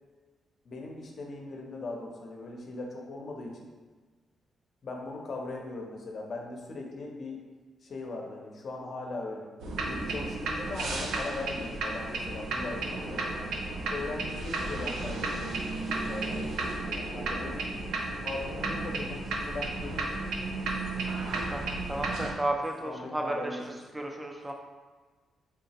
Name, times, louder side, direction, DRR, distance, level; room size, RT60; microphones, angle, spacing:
voice 1, 0.6-3.7 4.8-7.5 7.8-9.5 9.8-13.2 13.9-17.7 18.2-20.3 22.8-23.6, left 2 dB, 50° left, 0 dB, 0.6 m, -39 dB
sound 1, 9.6-22.3, right 2 dB, 85° right, 0.5 m, -33 dB
voice 2, 21.5-24.5, right 1 dB, 10° right, 2 dB, 0.4 m, -33 dB
3.6 x 2.8 x 2.8 m, 1.4 s
cardioid pair, 115°, 0 cm